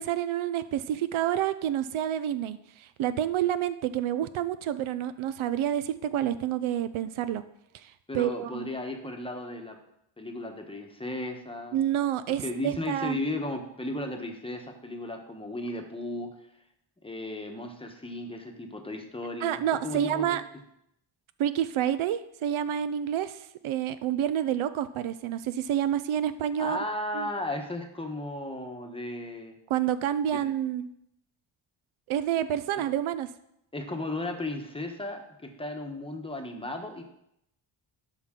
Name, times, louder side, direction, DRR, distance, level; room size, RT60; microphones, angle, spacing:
voice 1, 0.0-7.4 7.7-8.7 11.7-13.2 19.4-20.4 21.4-26.8 27.1-27.3 29.7-30.9 32.1-33.3, right 10 dB, 85° right, 13 dB, 0.5 m, -28 dB
voice 2, 8.1-9.8 10.2-11.8 12.4-16.3 17.0-20.4 26.6-29.5 30.3-30.4 33.7-37.0, left 1 dB, 10° left, 4 dB, 0.9 m, -35 dB
11.5 x 5.6 x 3.7 m, 0.79 s
wide cardioid pair, 150°, 48 cm